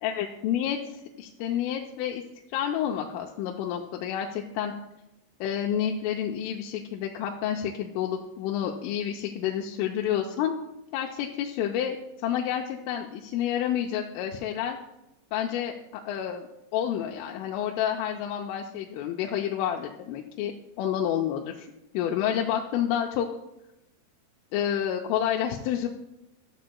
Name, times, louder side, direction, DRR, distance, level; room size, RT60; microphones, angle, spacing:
voice 1, 0.0-2.2 2.5-4.7 5.4-10.5 10.9-12.0 12.2-14.8 15.3-20.5 20.8-21.7 21.9-23.3 24.5-25.9, left 10 dB, 90° left, 1 dB, 3.2 m, -29 dB
14.0 x 12.5 x 2.2 m, 0.91 s
omnidirectional pair, 5.6 m